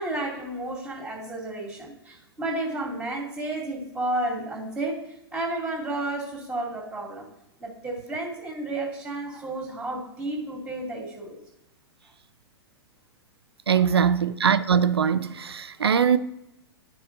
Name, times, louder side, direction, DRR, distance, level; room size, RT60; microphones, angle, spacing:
voice 1, 0.0-7.3 7.6-11.4 13.7-14.2, right 2 dB, 5° right, 2.4 m, -32 dB
voice 2, 13.7-16.2, right 7 dB, 85° right, 0.4 m, -21 dB
12.5 x 4.8 x 2.6 m
figure-of-eight pair, 105°, 13 cm